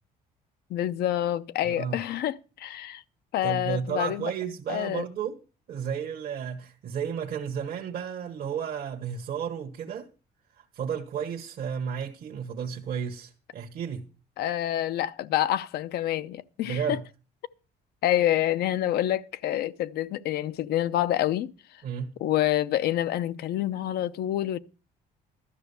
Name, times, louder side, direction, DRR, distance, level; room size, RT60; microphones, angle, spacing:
voice 1, 0.7-3.0 3.3-4.3 4.7-5.0 14.4-17.0 18.0-21.8 22.2-24.6, left 13 dB, 70° left, 0.7 m, -27 dB
voice 2, 1.6-2.0 3.4-5.4 5.7-10.1 10.5-14.1 16.6-17.0 21.8-22.1, right 7 dB, 60° right, 1.3 m, -33 dB
12.5 x 6.1 x 6.9 m
cardioid pair, 110°, 17 cm